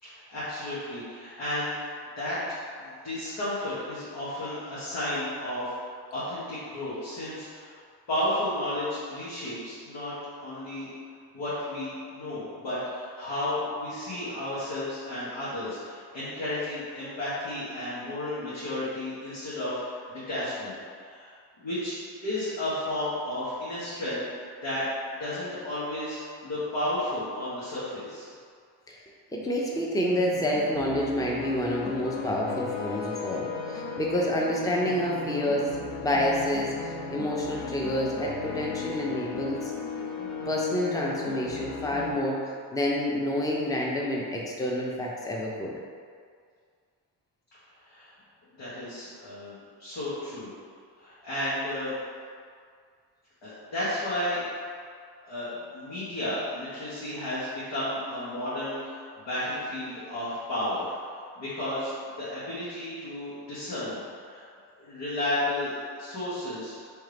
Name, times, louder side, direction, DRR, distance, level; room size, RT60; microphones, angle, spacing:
voice 1, 0.0-7.7 8.1-10.1 10.4-10.9 11.3-20.8 21.0-21.3 21.6-28.3 47.8-48.1 48.6-50.5 51.0-51.9 53.4-54.6 55.2-64.4 64.8-66.8, left 1 dB, 70° left, -12 dB, 1.4 m, -33 dB
voice 2, 29.4-39.7 40.5-45.7, equal, 10° left, -3 dB, 0.7 m, -28 dB
sound 1, 30.1-42.1, left 5 dB, 35° left, 1.0 m, -36 dB
3.7 x 3.2 x 3.3 m, 2.1 s
supercardioid pair, 50°, 44 cm